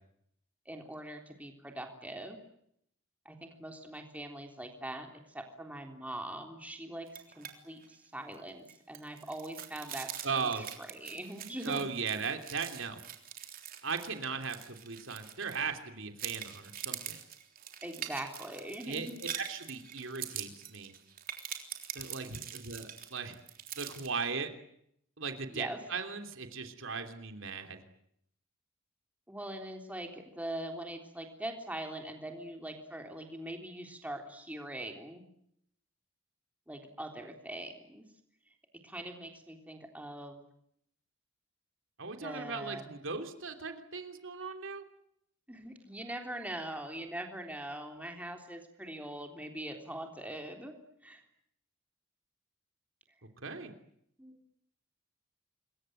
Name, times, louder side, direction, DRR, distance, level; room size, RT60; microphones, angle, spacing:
voice 1, 0.7-2.4 3.3-5.1 5.3-11.8 17.8-19.2 25.5-25.8 29.3-35.2 36.7-38.0 38.8-40.4 42.2-42.9 45.5-50.7 51.0-51.2 54.2-54.4, right 1 dB, 5° right, 3 dB, 3.6 m, -42 dB
sound 1, 7.1-7.5 7.8-8.0 8.3-15.8 16.2-24.1, right 10 dB, 45° right, 3.6 m, -44 dB
voice 2, 10.2-10.6 11.6-13.0 13.8-17.2 18.9-20.9 21.9-23.4 23.8-24.5 25.2-27.8 42.0-44.8 53.4-53.7, right 5 dB, 70° right, 6 dB, 3.1 m, -37 dB
27.0 x 22.5 x 9.1 m, 0.74 s
head